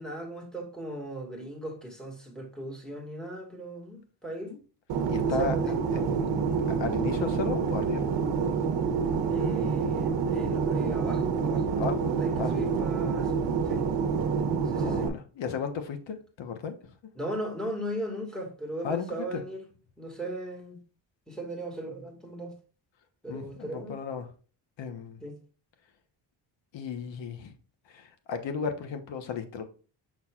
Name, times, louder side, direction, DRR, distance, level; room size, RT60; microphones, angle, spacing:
voice 1, 0.0-4.6 5.2-6.1 9.3-11.8 12.1-13.9 14.7-15.1 17.2-19.6 20.0-20.8 21.3-22.6 23.2-24.0 25.2-25.4, right 1 dB, ahead, 2.1 m, -38 dB
Fixed-wing aircraft airplane, 4.9-15.1, right 5 dB, 75° right, 1.0 m, -27 dB
voice 2, 5.1-8.1 11.8-12.5 14.7-16.9 18.8-19.1 19.3-19.4 23.3-24.3 24.8-25.2 26.7-27.5 27.9-29.6, left 6 dB, 80° left, 1.2 m, -35 dB
6.4 x 6.0 x 2.5 m
cardioid pair, 115°, 44 cm